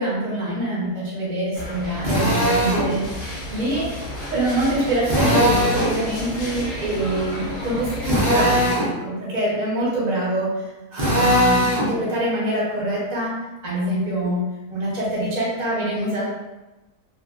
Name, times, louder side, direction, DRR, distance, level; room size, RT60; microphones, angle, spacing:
voice 1, 0.0-3.9 4.3-10.6 10.9-13.3 13.6-14.4 14.7-16.2, right 1 dB, 35° right, -7 dB, 0.7 m, -25 dB
Cruiseship - inside waste press, 1.5-8.4, left 1 dB, 55° left, 0.6 m, -32 dB
Drill, 2.0-2.9 5.0-5.9 8.0-8.9 10.9-11.9, equal, 80° right, 0.4 m, -20 dB
2.5 x 2.5 x 2.4 m, 1.1 s
omnidirectional pair, 1.7 m